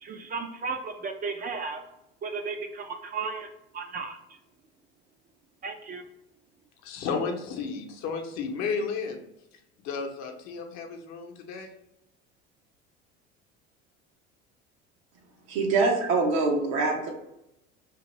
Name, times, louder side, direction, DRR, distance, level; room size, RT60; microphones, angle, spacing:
voice 1, 0.0-1.8 2.2-3.5 3.7-4.4 5.6-6.0, right 4 dB, 30° right, 6 dB, 0.4 m, -34 dB
voice 2, 6.8-9.2 9.8-11.7, left 5 dB, 60° left, 3 dB, 0.7 m, -33 dB
voice 3, 15.5-17.1, right 3 dB, 70° right, 1 dB, 0.9 m, -24 dB
2.9 x 2.5 x 3.0 m, 0.87 s
hypercardioid pair, 80°, 31 cm